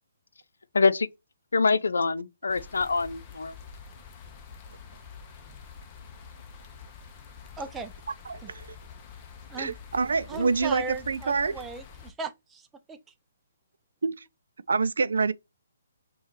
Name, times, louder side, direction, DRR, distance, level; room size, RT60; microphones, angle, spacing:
voice 1, 0.7-1.1 1.5-3.5, left 4 dB, 90° left, 0.4 m, -25 dB
sound 1, 2.5-12.1, left 6 dB, 25° left, 0.7 m, -47 dB
voice 2, 7.6-7.9 8.4-8.5 9.5-9.8 10.3-13.0, right 4 dB, 10° right, 0.4 m, -37 dB
voice 3, 8.3-8.7 9.6-11.5 14.0-14.2 14.7-15.3, right 4 dB, 80° right, 0.4 m, -26 dB
5.5 x 2.4 x 3.1 m
hypercardioid pair, 155°, 0 cm